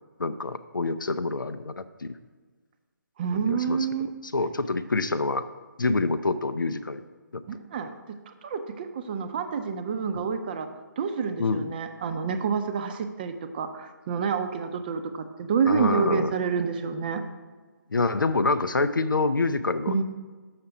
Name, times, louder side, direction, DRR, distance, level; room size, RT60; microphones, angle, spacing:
voice 1, 0.2-2.1 3.3-3.8 4.2-5.4 5.8-7.0 10.1-10.3 11.4-11.7 15.7-16.3 17.9-20.0, left 3 dB, 90° left, 10 dB, 0.4 m, -26 dB
voice 2, 3.2-4.1 7.5-7.9 8.3-10.7 11.0-17.2 19.9-20.0, right 6 dB, 30° right, 8 dB, 0.6 m, -28 dB
6.5 x 5.8 x 4.7 m, 1.4 s
figure-of-eight pair, 150°, 11 cm